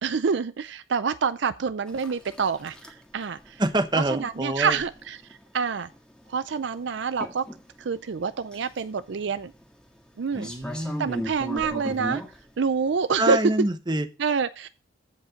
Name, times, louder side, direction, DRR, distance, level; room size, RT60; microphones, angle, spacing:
voice 1, 0.0-3.6 4.1-5.2 5.5-5.9 6.3-7.4 7.8-9.5 10.2-10.5 11.0-12.2 12.6-13.4 14.2-14.7, right 5 dB, 60° right, 0.4 m, -27 dB
sound 1, 1.9-13.7, equal, 5° left, 1.8 m, -40 dB
voice 2, 3.6-4.8 10.3-11.1 13.2-14.1, right 1 dB, 20° right, 0.9 m, -26 dB
15.0 x 5.3 x 5.1 m
head